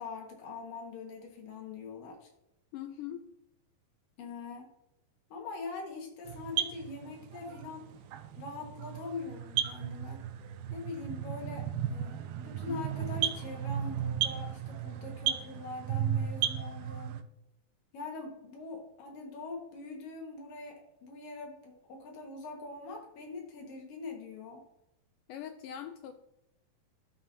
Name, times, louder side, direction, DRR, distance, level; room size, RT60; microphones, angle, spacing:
voice 1, 0.0-2.3 4.2-4.7 5.3-7.9 8.4-10.3 10.7-17.2 17.9-24.6, left 3 dB, 70° left, 1 dB, 2.9 m, -43 dB
voice 2, 2.7-3.2 12.7-12.8 25.3-26.1, left 10 dB, 85° left, 6 dB, 1.9 m, -41 dB
sound 1, 6.3-17.2, right 9 dB, 80° right, 2.3 m, -35 dB
12.5 x 5.6 x 2.6 m, 0.85 s
omnidirectional pair, 4.3 m